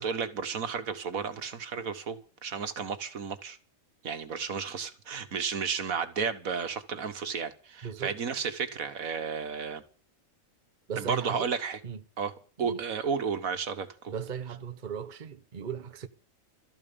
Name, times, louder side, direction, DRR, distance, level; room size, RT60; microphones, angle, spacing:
voice 1, 0.0-3.6 4.0-9.8 11.0-11.8 12.2-12.3 12.6-14.1, right 6 dB, 80° right, 1.9 m, -33 dB
voice 2, 7.8-8.2 10.9-11.5 11.8-12.0 12.6-12.8 14.1-16.1, right 8 dB, 40° right, 1.1 m, -37 dB
13.5 x 12.5 x 6.9 m
omnidirectional pair, 1.4 m